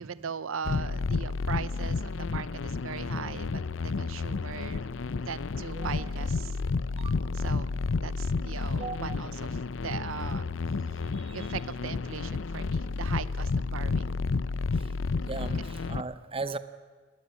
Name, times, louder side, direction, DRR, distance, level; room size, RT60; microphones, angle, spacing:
voice 1, 0.0-4.8 5.2-6.6 7.3-7.7 8.0-10.4 11.3-14.1, right 6 dB, 80° right, 17 dB, 0.6 m, -39 dB
sound 1, 0.6-16.0, left 4 dB, 65° left, 0.6 m, -31 dB
voice 2, 15.2-16.6, right 3 dB, 25° right, 13 dB, 0.7 m, -37 dB
19.0 x 18.5 x 8.3 m, 1.5 s
head